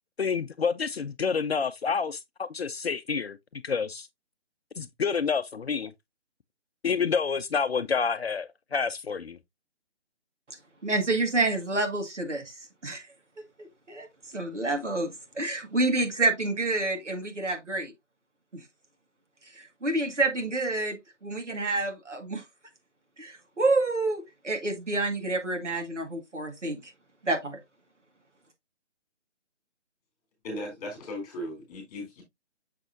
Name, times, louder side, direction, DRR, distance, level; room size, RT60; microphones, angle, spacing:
voice 1, 0.2-4.1 4.8-5.9 6.8-9.4, left 5 dB, 60° left, 0.6 m, -28 dB
voice 2, 10.8-13.1 13.6-14.1 14.3-17.9 18.5-18.6 19.6-22.4 23.2-26.9 27.2-27.6, right 2 dB, 80° right, 2.0 m, -28 dB
voice 3, 30.4-32.2, equal, 15° left, 3.4 m, -37 dB
6.6 x 5.9 x 2.5 m
figure-of-eight pair, 155°, 35 cm